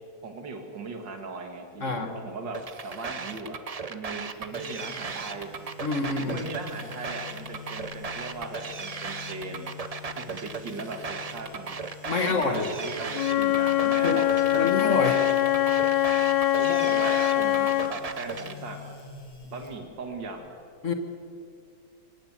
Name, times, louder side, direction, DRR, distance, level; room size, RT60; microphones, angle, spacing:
voice 1, 0.2-3.6 3.9-5.5 6.2-9.7 10.2-11.8 12.1-15.0 16.6-18.9 19.4-20.6, right 3 dB, 80° right, 4 dB, 2.5 m, -38 dB
voice 2, 1.8-2.1 5.8-6.5 12.0-12.7 14.0-14.2 14.5-15.2 20.8-20.9, left 4 dB, 45° left, 6 dB, 1.6 m, -27 dB
sound 1, 2.5-18.5, right 5 dB, 45° right, 0.4 m, -36 dB
sound 2, 4.3-20.3, left 5 dB, 65° left, 3.5 m, -47 dB
Wind instrument woodwind instrument, 13.1-18.0, left 14 dB, 85° left, 1.5 m, -23 dB
24.0 x 18.0 x 7.4 m, 2.3 s
omnidirectional pair, 2.0 m